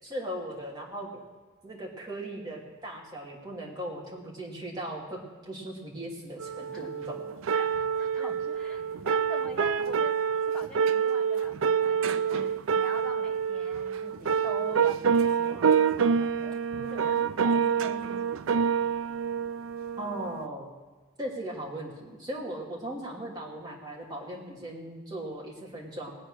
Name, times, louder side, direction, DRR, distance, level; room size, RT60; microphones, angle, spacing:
voice 1, 0.0-1.2 1.6-7.2 8.2-8.3 20.0-20.7 21.2-26.1, right 1 dB, 20° right, -4 dB, 2.8 m, -38 dB
sound 1, 6.4-20.5, right 6 dB, 90° right, 0.4 m, -27 dB
voice 2, 7.5-10.2 10.5-18.4, equal, 5° left, -1 dB, 1.3 m, -45 dB
19.5 x 7.7 x 6.4 m, 1.3 s
head